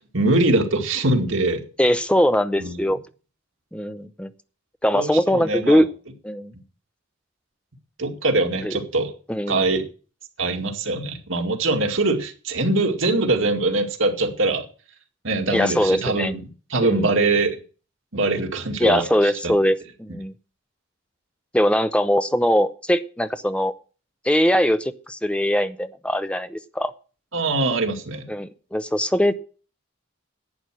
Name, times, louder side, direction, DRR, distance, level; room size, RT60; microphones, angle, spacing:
voice 1, 0.0-1.6 2.6-2.9 4.9-5.8 8.0-9.1 9.5-9.9 10.4-14.7 15.2-16.4 16.7-17.6 18.1-19.3 27.3-28.3, right 2 dB, 80° right, 2.2 m, -22 dB
voice 2, 1.8-3.0 3.7-4.3 4.8-5.9 6.2-6.5 8.6-8.7 9.3-9.6 15.5-16.3 16.8-17.1 18.8-20.3 21.5-23.7 24.2-26.9 28.3-29.3, equal, 5° left, 0.7 m, -21 dB
11.0 x 8.9 x 6.3 m
head